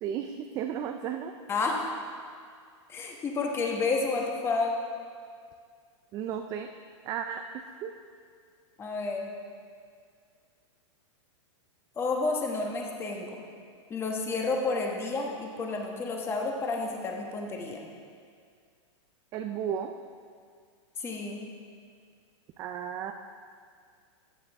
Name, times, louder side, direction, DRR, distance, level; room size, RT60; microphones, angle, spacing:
voice 1, 0.0-1.3 6.1-6.7 7.0-7.4 7.8-7.9 19.3-19.9 22.6-23.1, right 9 dB, 20° right, 5 dB, 0.3 m, -33 dB
voice 2, 1.5-1.8 2.9-4.8 8.8-9.3 12.0-13.4 13.9-17.8 21.0-21.4, left 3 dB, 15° left, 1 dB, 1.2 m, -30 dB
14.5 x 9.5 x 3.5 m, 2.1 s
supercardioid pair, 155°, 16 cm